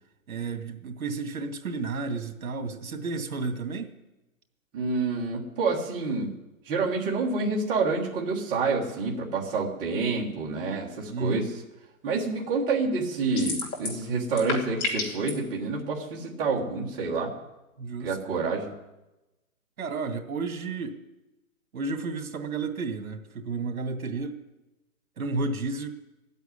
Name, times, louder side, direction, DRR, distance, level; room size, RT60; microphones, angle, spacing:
voice 1, 0.3-3.9 11.1-11.5 17.8-18.4 19.8-21.0 21.7-24.4 25.2-26.0, right 3 dB, 70° right, 6 dB, 2.2 m, -32 dB
voice 2, 4.7-6.3 6.7-11.5 12.0-17.3 18.0-18.7, right 4 dB, 10° right, -4 dB, 1.4 m, -28 dB
sound 1, 13.4-14.0 14.3-15.3, left 3 dB, 80° left, 4.6 m, -30 dB
16.0 x 8.1 x 9.9 m, 1.0 s
hypercardioid pair, 170°, 43 cm